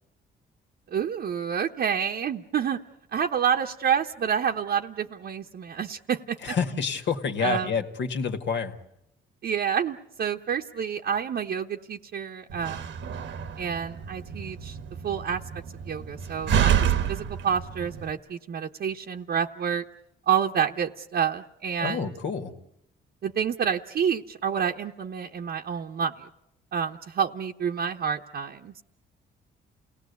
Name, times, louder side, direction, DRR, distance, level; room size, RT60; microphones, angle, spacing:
voice 1, 0.9-2.8 3.1-6.4 7.4-7.7 9.4-12.8 13.6-14.8 15.0-15.4 15.9-19.8 20.3-22.1 23.2-26.1 26.7-28.8, right 7 dB, 55° right, 1 dB, 1.0 m, -28 dB
voice 2, 6.4-8.7 21.8-22.5, left 6 dB, 65° left, 6 dB, 2.0 m, -28 dB
Slam, 12.5-18.1, right 9 dB, 75° right, 1.3 m, -29 dB
29.0 x 18.5 x 8.3 m, 0.81 s
cardioid pair, 90°, 20 cm